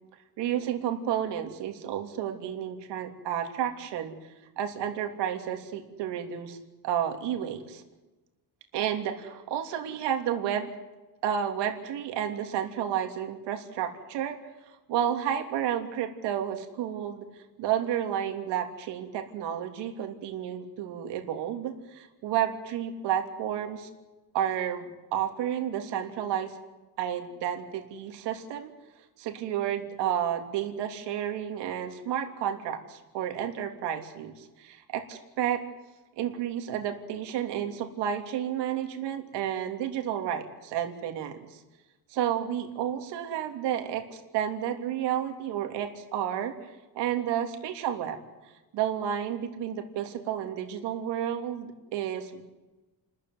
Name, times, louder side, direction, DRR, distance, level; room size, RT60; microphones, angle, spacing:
voice 1, 0.4-4.2 4.6-6.6 6.8-7.8 8.7-10.7 11.2-14.4 14.9-17.2 17.6-23.9 24.3-26.5 27.0-28.7 29.2-35.6 36.2-41.6 42.1-46.5 46.9-48.2 48.7-52.4, right 10 dB, 80° right, 4 dB, 3.2 m, -31 dB
29.5 x 14.5 x 9.6 m, 1.1 s
cardioid pair, 150°, 41 cm